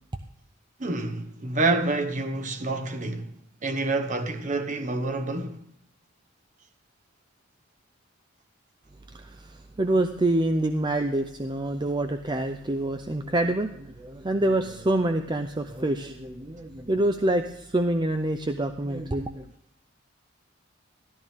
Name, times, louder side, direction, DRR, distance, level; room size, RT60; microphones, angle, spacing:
voice 1, 0.8-3.3 3.6-5.6, right 2 dB, 40° right, 1.1 m, -27 dB
voice 2, 9.1-19.5, right 1 dB, 20° right, 0.5 m, -26 dB
13.5 x 13.0 x 3.6 m
head